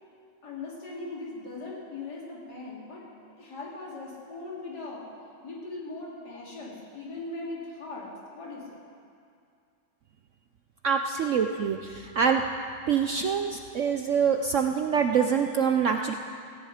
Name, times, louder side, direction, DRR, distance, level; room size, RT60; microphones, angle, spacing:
voice 1, 0.4-3.0 3.4-5.1 5.4-8.8, left 3 dB, 65° left, -5 dB, 3.6 m, -39 dB
voice 2, 10.8-12.4 12.9-16.1, right 6 dB, 65° right, 5 dB, 0.8 m, -25 dB
17.0 x 16.5 x 5.0 m, 2.4 s
omnidirectional pair, 1.9 m